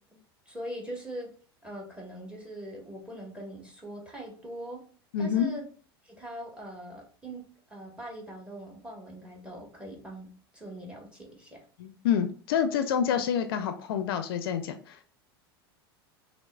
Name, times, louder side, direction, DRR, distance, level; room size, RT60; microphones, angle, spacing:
voice 1, 0.5-1.3 1.6-4.8 5.2-5.6 6.0-7.4 7.7-10.3 10.5-11.6, right 1 dB, 10° right, 0 dB, 1.4 m, -41 dB
voice 2, 5.1-5.5 11.8-15.0, left 8 dB, 65° left, 8 dB, 0.5 m, -28 dB
5.8 x 2.0 x 2.3 m, 0.41 s
hypercardioid pair, 90°, 13 cm